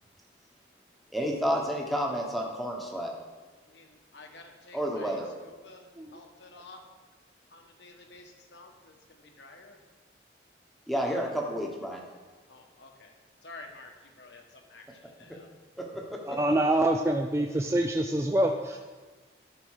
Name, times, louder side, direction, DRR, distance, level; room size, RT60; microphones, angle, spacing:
voice 1, 1.1-3.1 4.7-5.3 10.9-12.0 16.3-16.4, equal, ahead, 0 dB, 1.1 m, -30 dB
voice 2, 3.7-6.8 7.5-9.8 12.5-13.1 13.4-15.5, left 3 dB, 75° left, 3 dB, 1.3 m, -51 dB
voice 3, 16.3-18.8, right 1 dB, 15° right, 3 dB, 0.3 m, -26 dB
12.0 x 5.2 x 4.8 m, 1.3 s
head